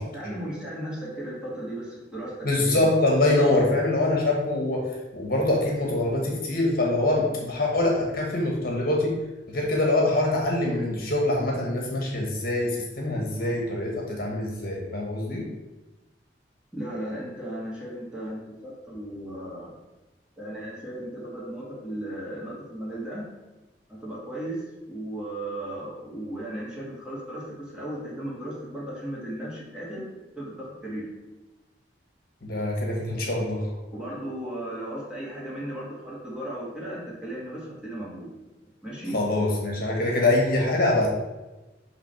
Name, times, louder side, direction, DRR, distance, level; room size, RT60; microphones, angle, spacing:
voice 1, 0.1-2.9 3.4-3.5 16.7-19.7 20.4-23.2 23.9-24.6 24.9-30.0 30.4-31.1 33.9-38.3 38.8-39.2, right 1 dB, 5° right, -7 dB, 2.1 m, -36 dB
voice 2, 2.4-4.8 5.1-9.2 9.5-15.5 32.4-33.7 39.1-41.1, left 2 dB, 55° left, -1 dB, 1.2 m, -24 dB
6.0 x 3.2 x 5.8 m, 1.1 s
head